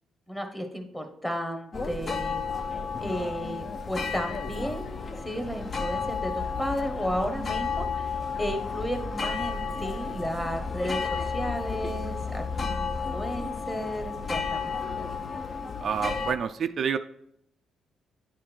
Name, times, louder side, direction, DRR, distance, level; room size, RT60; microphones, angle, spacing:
voice 1, 0.3-2.4 3.0-5.0 5.2-14.7, equal, 15° left, 5 dB, 1.2 m, -33 dB
sound 1, 1.7-16.3, left 5 dB, 40° left, 0.6 m, -32 dB
voice 2, 15.8-17.0, right 7 dB, 55° right, 9 dB, 0.3 m, -28 dB
9.5 x 3.7 x 4.4 m, 0.74 s
cardioid pair, 90°, 0 cm